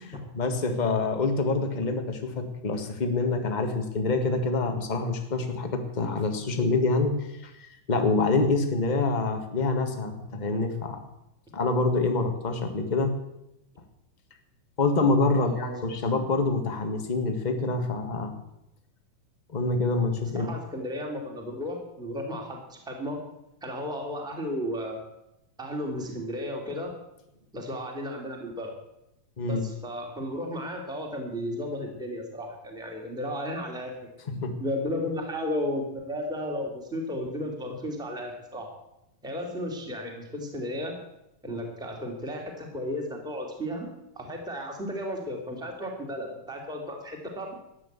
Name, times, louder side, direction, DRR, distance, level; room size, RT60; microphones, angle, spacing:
voice 1, 0.0-11.0 11.5-13.1 14.8-18.3 19.5-20.5 29.4-29.6 34.3-34.6, left 3 dB, 25° left, 5 dB, 1.0 m, -26 dB
voice 2, 15.3-15.8 20.3-23.2 23.6-25.0 25.6-27.0 27.5-28.7 29.5-34.0 34.3-38.7 39.2-41.0 41.4-43.9 44.1-47.5, left 1 dB, ahead, 1 dB, 2.5 m, -34 dB
14.0 x 10.0 x 8.3 m, 0.86 s
omnidirectional pair, 3.6 m